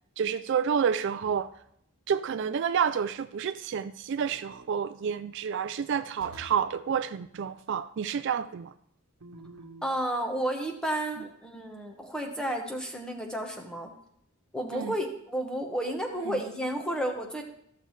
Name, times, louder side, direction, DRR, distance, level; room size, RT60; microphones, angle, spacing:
voice 1, 0.2-1.5 2.1-8.7 14.7-15.0 16.3-16.4, right 7 dB, 55° right, 12 dB, 0.3 m, -29 dB
sound 1, 1.2-1.7 4.2-4.7 6.2-6.7 9.2-9.9, right 2 dB, 85° right, 1.1 m, -49 dB
voice 2, 9.8-13.9 14.5-17.4, right 1 dB, 5° left, 3 dB, 1.0 m, -32 dB
14.0 x 6.6 x 3.2 m, 0.73 s
head